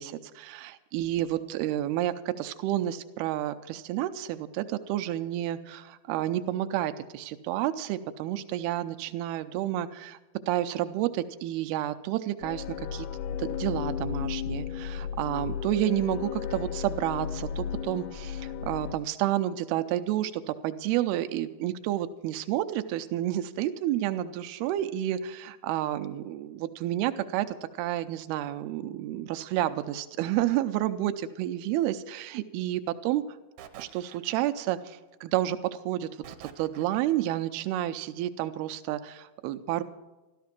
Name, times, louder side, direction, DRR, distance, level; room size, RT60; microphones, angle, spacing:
voice 1, 0.0-10.2 10.5-33.2 33.8-39.8, right 13 dB, 90° right, 9 dB, 2.6 m, -30 dB
sound 1, 12.4-18.9, left 8 dB, 80° left, 1.9 m, -34 dB
sound 2, 33.6-34.8 36.2-37.3, right 9 dB, 70° right, 1.8 m, -49 dB
13.5 x 13.0 x 5.9 m, 1.1 s
omnidirectional pair, 4.4 m